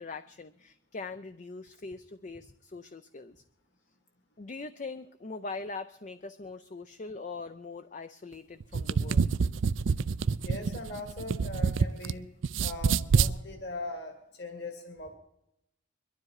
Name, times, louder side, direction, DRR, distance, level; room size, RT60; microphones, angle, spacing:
voice 1, 0.0-3.4 4.4-9.3, left 3 dB, 35° left, 11 dB, 0.5 m, -42 dB
sound 1, 8.6-12.1 12.4-13.3, right 5 dB, 70° right, 0.5 m, -26 dB
voice 2, 10.4-12.3 12.6-15.1, left 2 dB, 55° left, 5 dB, 2.1 m, -40 dB
22.5 x 12.5 x 4.8 m, 0.83 s
head